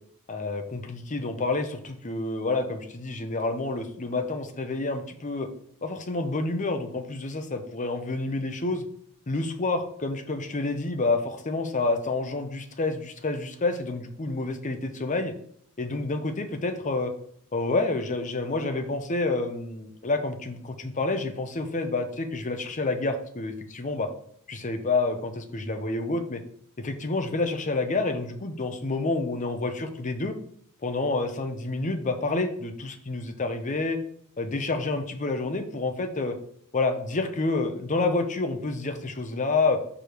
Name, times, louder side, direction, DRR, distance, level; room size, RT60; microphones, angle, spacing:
voice 1, 0.3-5.5 5.8-8.9 9.3-15.3 15.8-17.1 17.5-24.1 24.5-26.4 26.8-30.4 30.8-34.0 34.4-36.4 36.7-39.8, left 3 dB, 35° left, 7 dB, 0.7 m, -28 dB
4.9 x 4.7 x 5.0 m, 0.66 s
head